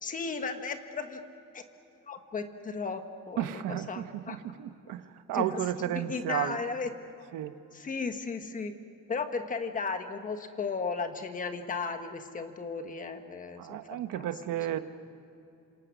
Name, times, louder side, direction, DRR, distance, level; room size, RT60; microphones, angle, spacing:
voice 1, 0.0-1.2 1.5-1.6 2.0-4.4 4.8-4.9 5.3-5.6 5.9-6.9 7.7-8.7 9.1-14.3 14.7-14.8, left 4 dB, 25° left, 7 dB, 1.3 m, -35 dB
voice 2, 3.4-5.0 5.3-6.6 7.3-7.6 13.6-14.8, right 12 dB, 85° right, 10 dB, 1.2 m, -33 dB
27.5 x 26.5 x 6.2 m, 2.7 s
cardioid pair, 180°, 32 cm